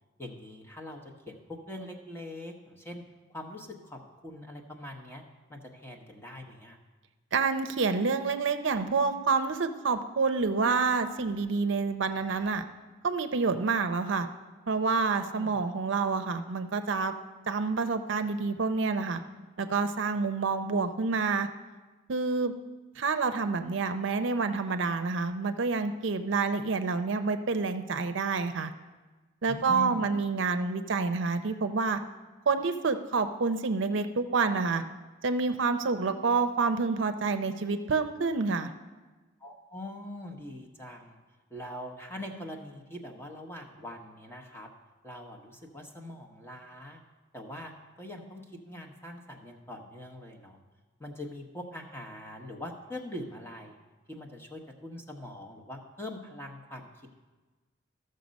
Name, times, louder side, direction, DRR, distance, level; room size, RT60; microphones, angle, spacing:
voice 1, 0.2-3.0 3.3-5.2 5.5-6.8 15.3-15.6 29.5-30.1 39.4-41.2 41.5-44.7 45.0-47.0 47.3-47.7 48.0-50.6 51.0-53.8 54.1-57.2, left 1 dB, 10° left, 1 dB, 0.9 m, -42 dB
voice 2, 7.3-12.6 13.0-14.3 14.7-17.1 17.5-19.2 19.6-21.5 22.1-22.5 23.0-28.7 29.4-32.0 32.5-34.8 35.2-38.7, right 4 dB, 65° right, 8 dB, 0.5 m, -28 dB
13.5 x 6.6 x 5.2 m, 1.3 s
head